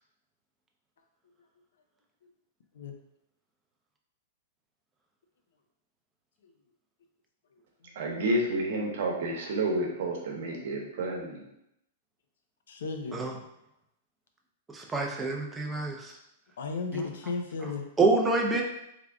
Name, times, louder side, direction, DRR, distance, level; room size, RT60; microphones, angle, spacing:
voice 1, 8.0-11.4, right 1 dB, 60° right, 0 dB, 0.9 m, -30 dB
voice 2, 12.7-13.2 16.6-17.9, left 4 dB, 80° left, 5 dB, 0.6 m, -34 dB
voice 3, 14.7-16.1 16.9-17.0 17.6-17.7 18.0-18.6, right 3 dB, 10° right, 1 dB, 0.4 m, -27 dB
3.3 x 2.5 x 3.5 m, 0.81 s
supercardioid pair, 165°, 0 cm